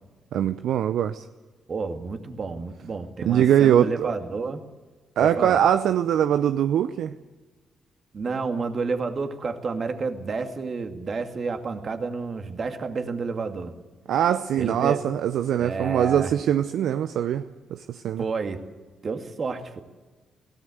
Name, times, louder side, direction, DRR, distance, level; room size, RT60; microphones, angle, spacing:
voice 1, 0.3-1.2 3.2-4.1 5.2-7.2 14.1-18.2, right 10 dB, 65° right, 0.6 m, -22 dB
voice 2, 1.7-4.6 5.2-5.6 8.1-13.7 14.5-15.0 15.6-16.3 18.2-18.6 19.0-19.8, right 4 dB, 45° right, 2.3 m, -30 dB
23.0 x 17.0 x 8.0 m
hypercardioid pair, 40°, 0 cm